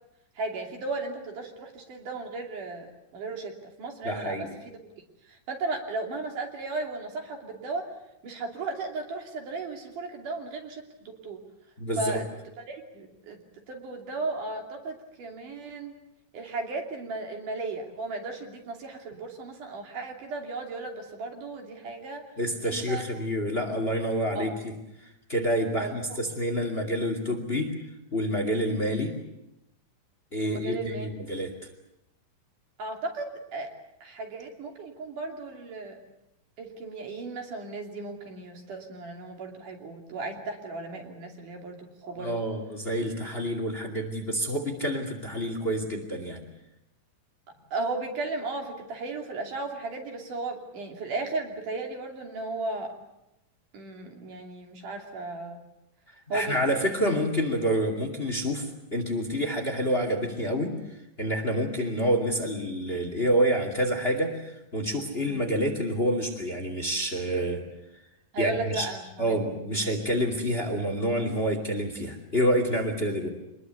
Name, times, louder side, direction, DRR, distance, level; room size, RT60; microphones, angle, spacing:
voice 1, 0.4-4.8 5.2-7.9 8.2-11.4 12.0-12.3 12.7-13.4 13.7-16.0 16.3-22.2 22.6-23.0 24.4-24.5 25.8-25.9 30.4-31.1 32.8-33.7 34.0-36.0 36.6-42.4 47.7-52.9 53.7-55.6 56.3-56.7 65.3-65.5 68.3-69.4 69.7-69.9, right 3 dB, 70° right, 2 dB, 4.4 m, -35 dB
voice 2, 4.0-4.5 11.8-12.2 22.4-24.5 25.3-27.8 28.1-29.1 30.3-31.5 42.2-46.4 56.3-60.8 61.2-67.6 68.4-68.9 69.2-73.3, equal, 20° left, 5 dB, 2.4 m, -28 dB
25.5 x 21.0 x 8.2 m, 0.89 s
omnidirectional pair, 3.8 m